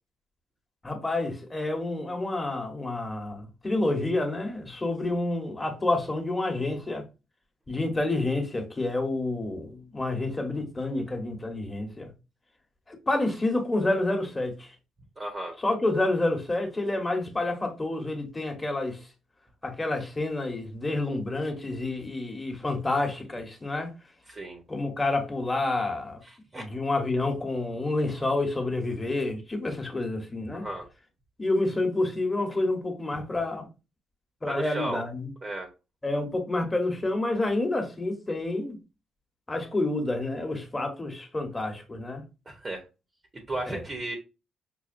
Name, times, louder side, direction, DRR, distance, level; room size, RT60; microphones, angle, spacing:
voice 1, 0.8-7.0 7.7-12.1 12.9-14.7 15.6-19.1 19.6-23.9 24.7-26.2 26.5-30.7 31.4-33.7 34.4-35.3 36.0-38.8 39.5-42.2 43.7-43.8, left 2 dB, 20° left, 1.1 m, -29 dB
voice 2, 15.2-15.5 24.3-24.6 26.3-26.7 30.5-30.9 34.5-35.0 35.4-35.7 42.5-42.8 43.5-44.2, right 2 dB, 30° right, 0.9 m, -34 dB
5.5 x 2.3 x 2.5 m
cardioid pair, 90°, 0 cm